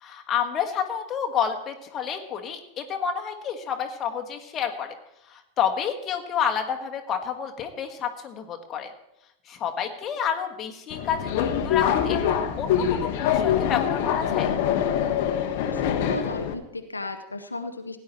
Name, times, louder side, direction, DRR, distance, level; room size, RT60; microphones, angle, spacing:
voice 1, 0.0-4.9 5.3-8.9 9.5-12.2 12.6-14.5, left 8 dB, 30° left, 4 dB, 1.4 m, -29 dB
Subway metro underground, 10.9-16.5, left 9 dB, 50° left, 1.1 m, -24 dB
voice 2, 15.4-18.0, left 3 dB, 80° left, 7 dB, 0.8 m, -35 dB
16.5 x 9.9 x 4.4 m, 0.84 s
figure-of-eight pair, 90°, 0 cm